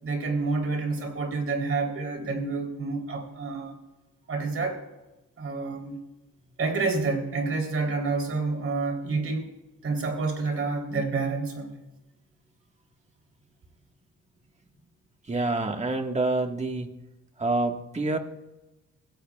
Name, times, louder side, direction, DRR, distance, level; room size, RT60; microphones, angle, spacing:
voice 1, 0.0-3.8 4.3-4.8 5.4-6.0 6.6-9.5 9.8-11.8, right 3 dB, 45° right, 2 dB, 3.7 m, -28 dB
voice 2, 15.3-16.9 17.4-18.2, right 2 dB, 20° right, 4 dB, 1.7 m, -27 dB
26.0 x 16.0 x 2.4 m, 1.0 s
cardioid pair, 90°, 30 cm